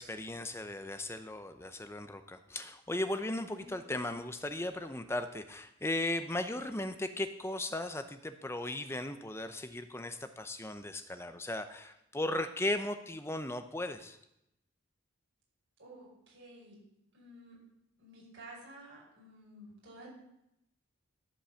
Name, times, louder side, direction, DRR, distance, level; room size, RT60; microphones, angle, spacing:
voice 1, 0.0-14.2, left 1 dB, 10° left, 9 dB, 0.6 m, -37 dB
voice 2, 3.6-4.0 15.8-16.8 17.1-17.6 18.0-20.1, right 1 dB, 60° right, -4 dB, 5.5 m, -52 dB
13.5 x 5.4 x 7.0 m, 0.83 s
head